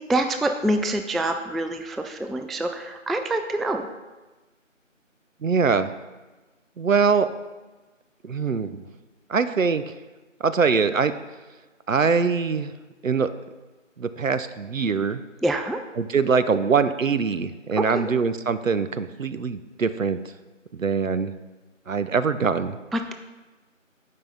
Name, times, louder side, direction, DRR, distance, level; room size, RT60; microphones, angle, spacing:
voice 1, 0.1-3.9 15.4-15.8 17.8-18.1 22.9-23.1, right 1 dB, ahead, 6 dB, 0.3 m, -26 dB
voice 2, 5.4-5.9 6.8-7.3 8.2-8.8 9.3-9.8 10.4-11.1 11.9-12.7 13.0-13.3 14.0-15.2 16.0-20.2 20.7-21.3 21.9-22.8, right 5 dB, 75° right, 12 dB, 0.6 m, -23 dB
7.7 x 5.4 x 4.0 m, 1.2 s
figure-of-eight pair, 180°, 39 cm